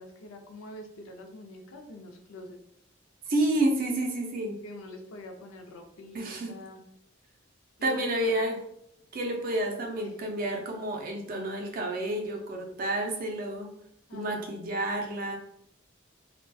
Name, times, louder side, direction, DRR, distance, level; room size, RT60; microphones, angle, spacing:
voice 1, 0.0-2.6 4.6-6.8 7.8-8.4 10.0-10.1 14.1-14.5, left 2 dB, 90° left, 4 dB, 0.4 m, -44 dB
voice 2, 3.3-4.6 6.1-6.5 7.8-8.6 9.1-13.7 14.1-15.4, right 1 dB, 45° right, 2 dB, 0.4 m, -30 dB
2.2 x 2.2 x 2.5 m, 0.75 s
head